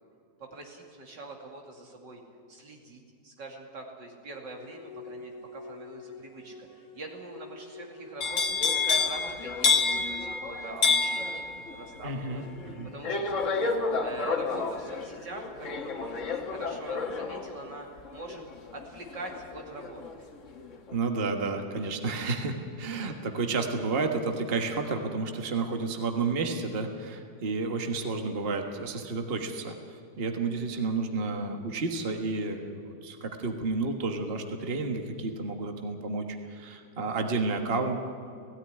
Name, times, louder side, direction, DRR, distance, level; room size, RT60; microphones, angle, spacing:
voice 1, 0.4-2.2 2.5-8.4 8.8-12.4 12.8-13.7 14.0-15.9 16.3-18.4 18.7-20.3, right 2 dB, 80° right, 1 dB, 3.3 m, -43 dB
sound 1, 4.5-10.2, left 4 dB, 75° left, 2.0 m, -46 dB
sound 2, 8.2-20.2 20.5-20.9, left 4 dB, 45° left, 1.5 m, -29 dB
voice 2, 12.0-12.4 12.8-12.9 20.9-29.8 30.2-38.0, right 3 dB, 35° right, 4 dB, 1.5 m, -31 dB
17.0 x 17.0 x 9.8 m, 2.4 s
omnidirectional pair, 1.9 m